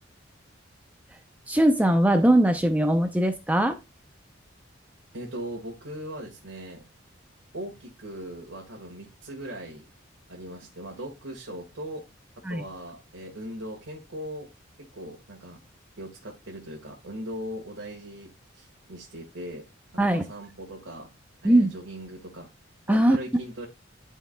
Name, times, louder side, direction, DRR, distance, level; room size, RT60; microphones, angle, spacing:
voice 1, 1.5-3.8 12.5-12.6 20.0-20.2 21.4-21.7 22.9-23.2, right 1 dB, 10° right, 0.5 m, -20 dB
voice 2, 5.1-6.8 7.5-9.8 10.3-12.0 12.5-14.5 14.9-15.6 16.0-19.6 19.9-21.1 21.4-22.5 22.9-23.7, equal, 80° right, 1.6 m, -39 dB
11.0 x 4.6 x 2.2 m
head